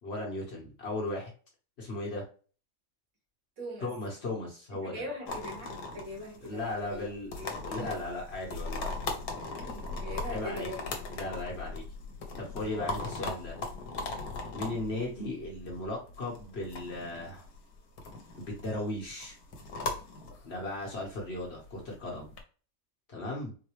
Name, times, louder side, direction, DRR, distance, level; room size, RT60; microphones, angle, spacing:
voice 1, 0.0-1.3 1.8-2.2 3.8-5.0 6.4-7.3 7.6-8.9 10.2-10.7 11.1-11.8 12.4-13.6 14.5-17.5 18.4-19.4 20.4-22.3 23.1-23.5, left 2 dB, 50° left, -1 dB, 1.1 m, -36 dB
voice 2, 3.6-3.9 4.8-6.6 6.9-7.1 7.4-7.5 7.8-8.0 9.6-10.9, left 1 dB, 70° right, -1 dB, 1.8 m, -41 dB
sound 1, 5.3-22.4, left 3 dB, 85° left, 1.2 m, -39 dB
4.0 x 2.1 x 3.0 m, 0.38 s
omnidirectional pair, 1.5 m